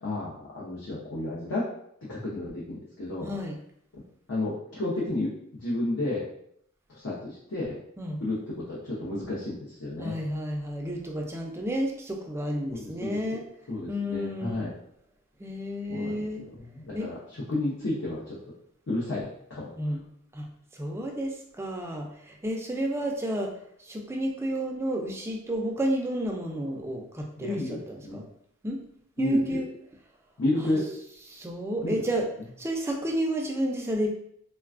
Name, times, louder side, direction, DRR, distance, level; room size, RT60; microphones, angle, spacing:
voice 1, 0.0-1.6 2.1-3.3 4.3-5.3 5.6-6.2 6.9-7.8 8.2-10.1 12.7-13.4 13.7-14.7 15.9-16.1 16.4-18.4 18.9-19.9 27.4-28.2 29.2-29.6 30.4-30.9 31.8-31.9, left 2 dB, 65° left, -6 dB, 0.7 m, -31 dB
voice 2, 3.2-3.6 8.0-8.2 10.0-13.4 13.9-14.7 15.4-16.4 16.9-17.1 19.8-20.0 20.3-20.5 20.7-23.5 23.8-28.2 28.6-28.8 29.2-29.7 30.6-30.8 31.3-32.3 32.6-34.1, equal, 10° right, 1 dB, 0.3 m, -31 dB
3.2 x 2.2 x 2.4 m, 0.71 s
head